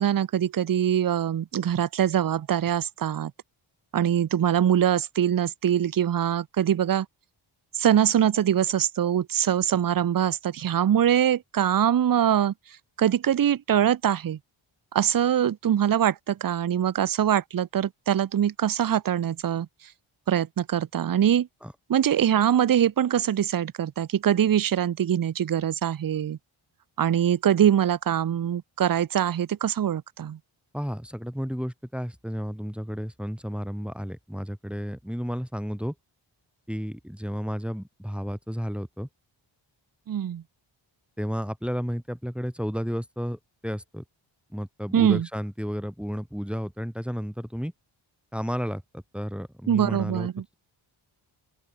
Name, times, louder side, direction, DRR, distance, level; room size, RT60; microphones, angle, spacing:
voice 1, 0.0-3.3 3.9-7.1 7.7-12.5 13.0-14.4 14.9-19.7 20.3-21.5 21.9-26.4 27.0-30.4 40.1-40.4 44.9-45.3 49.7-50.4, right 10 dB, 45° right, 0.6 m, -23 dB
voice 2, 30.7-35.9 36.7-39.1 41.2-44.0 44.5-47.7 48.3-50.3, equal, ahead, 2.1 m, -32 dB
open air
wide cardioid pair, 85°, 49 cm